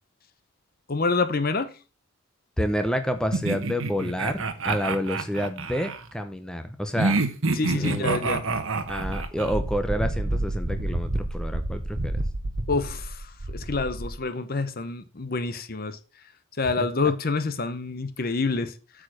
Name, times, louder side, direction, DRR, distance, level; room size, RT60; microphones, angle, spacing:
voice 1, 0.9-1.7 7.5-8.4 12.7-16.0 16.6-18.7, left 3 dB, 40° left, 0.8 m, -27 dB
voice 2, 2.6-7.2 7.8-8.2 8.9-12.1, equal, 5° left, 0.7 m, -29 dB
sound 1, 3.3-6.0 7.0-9.6, right 3 dB, 65° right, 1.1 m, -27 dB
Wind, 8.9-14.2, right 1 dB, 50° right, 0.9 m, -30 dB
8.5 x 5.0 x 6.2 m
head